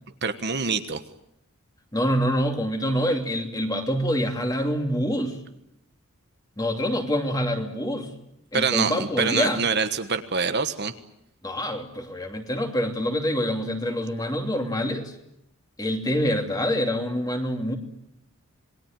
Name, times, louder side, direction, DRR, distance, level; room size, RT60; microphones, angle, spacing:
voice 1, 0.2-1.0 8.5-10.9, right 5 dB, 50° right, 8 dB, 1.4 m, -25 dB
voice 2, 1.9-5.4 6.6-8.1 8.5-9.6 11.4-15.1 15.8-17.8, equal, 15° left, 4 dB, 2.8 m, -26 dB
27.5 x 20.5 x 9.0 m, 0.80 s
head